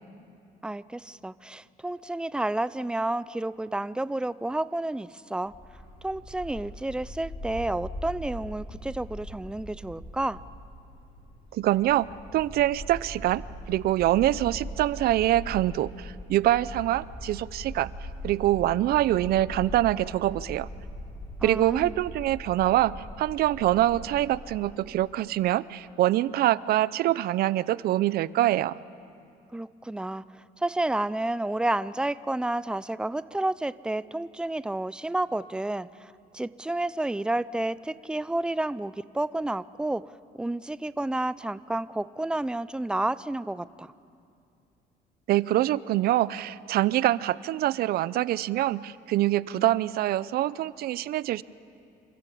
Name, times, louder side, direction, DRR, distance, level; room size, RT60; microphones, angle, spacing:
voice 1, 0.6-5.5 6.0-10.4 21.4-22.0 29.5-40.0 40.3-43.9, right 2 dB, 5° right, 17 dB, 0.4 m, -30 dB
Bark, 5.4-24.6, equal, 30° left, 5.7 m, -41 dB
voice 2, 11.5-17.9 18.2-20.7 21.4-28.8 45.3-51.4, right 14 dB, 65° right, 20 dB, 0.5 m, -25 dB
27.5 x 14.0 x 8.4 m, 2.5 s
cardioid pair, 110°, 17 cm